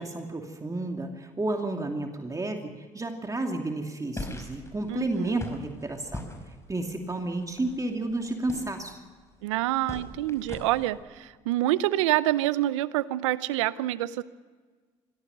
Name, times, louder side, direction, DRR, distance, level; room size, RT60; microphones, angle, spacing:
voice 1, 0.0-9.0, right 2 dB, 20° right, 3 dB, 2.5 m, -32 dB
sound 1, 4.2-10.9, left 2 dB, 20° left, 5.5 m, -42 dB
voice 2, 4.9-5.4 9.4-14.2, right 15 dB, 90° right, 17 dB, 0.7 m, -27 dB
23.5 x 16.5 x 6.7 m, 1.5 s
hypercardioid pair, 60°, 15 cm